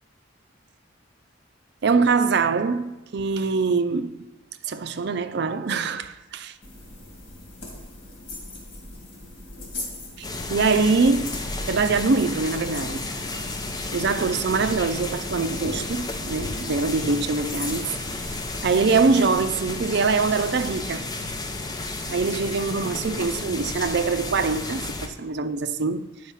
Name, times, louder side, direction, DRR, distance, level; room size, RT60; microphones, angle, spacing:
voice 1, 1.8-4.3 4.7-6.5 10.2-11.4 11.7-13.1 13.9-18.4 18.6-21.0 22.1-26.3, right 4 dB, 60° right, 0.5 m, -24 dB
sound 1, 6.6-18.9, left 2 dB, 80° left, 2.2 m, -39 dB
sound 2, 10.2-25.1, left 2 dB, 20° left, 0.6 m, -32 dB
9.5 x 4.5 x 5.6 m
head